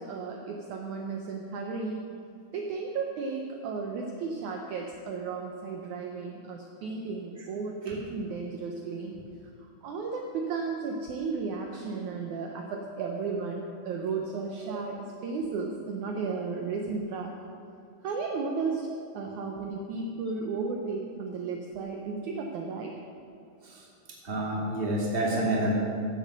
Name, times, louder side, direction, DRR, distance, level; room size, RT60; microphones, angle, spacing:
voice 1, 0.0-2.1 2.5-9.2 9.6-17.3 18.0-18.9 19.1-23.0, right 4 dB, 80° right, 1 dB, 1.7 m, -34 dB
voice 2, 24.2-25.7, right 1 dB, 20° right, -4 dB, 1.8 m, -28 dB
16.0 x 7.6 x 6.7 m, 2.5 s
omnidirectional pair, 4.7 m